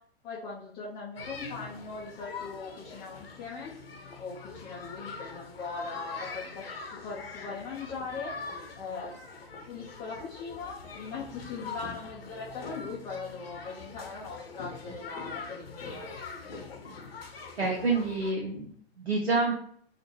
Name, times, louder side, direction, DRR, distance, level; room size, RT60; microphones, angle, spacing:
voice 1, 0.2-3.7 4.2-6.6 6.9-8.3 8.7-9.2 9.7-16.2, left 4 dB, 15° left, -7 dB, 0.3 m, -40 dB
sound 1, 1.1-18.3, left 4 dB, 70° left, 0.7 m, -43 dB
voice 2, 17.6-19.5, right 3 dB, 85° right, -3 dB, 0.6 m, -28 dB
3.1 x 2.1 x 2.9 m, 0.63 s
figure-of-eight pair, 105°, 31 cm